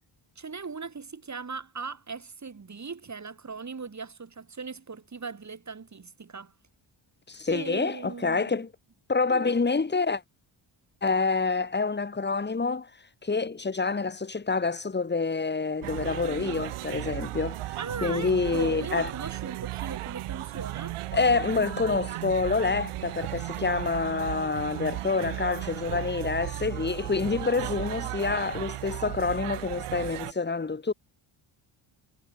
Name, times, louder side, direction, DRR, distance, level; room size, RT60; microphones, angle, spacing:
voice 1, 0.4-6.5 7.5-8.6 9.3-9.5 17.8-21.0, right 5 dB, 35° right, 5.7 m, -39 dB
voice 2, 7.3-8.7 9.1-10.2 11.0-12.9 13.2-19.1 21.1-30.9, left 4 dB, 20° left, 1.7 m, -27 dB
sound 1, 15.8-30.3, right 16 dB, 90° right, 0.8 m, -35 dB
cardioid pair, 110°, 49 cm